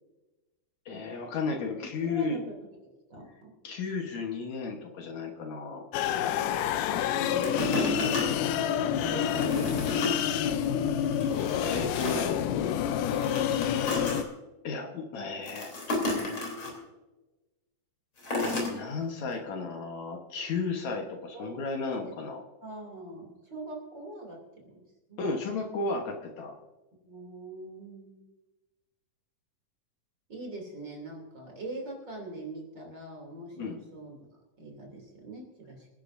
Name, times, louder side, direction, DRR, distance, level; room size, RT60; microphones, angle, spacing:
voice 1, 0.9-2.4 3.6-5.9 11.6-12.5 14.6-16.5 18.7-22.4 25.2-26.5 33.6-33.8, left 4 dB, 65° left, 2 dB, 2.5 m, -34 dB
voice 2, 2.0-2.5 2.8-3.5 7.1-8.3 8.6-10.8 21.3-21.6 22.0-22.1 22.6-24.8 25.1-25.2 27.0-28.2 30.3-34.1 34.6-35.9, right 1 dB, 35° right, 1 dB, 3.4 m, -41 dB
sound 1, 5.9-14.2, left 9 dB, 85° left, 2.3 m, -28 dB
sound 2, 7.4-8.7 9.2-10.2 10.6-10.7 11.1-12.4 13.0-14.2 15.4-16.7 18.2-18.7 19.3-19.4, left 2 dB, 40° left, 4.2 m, -33 dB
25.5 x 10.5 x 2.6 m, 1.1 s
omnidirectional pair, 3.6 m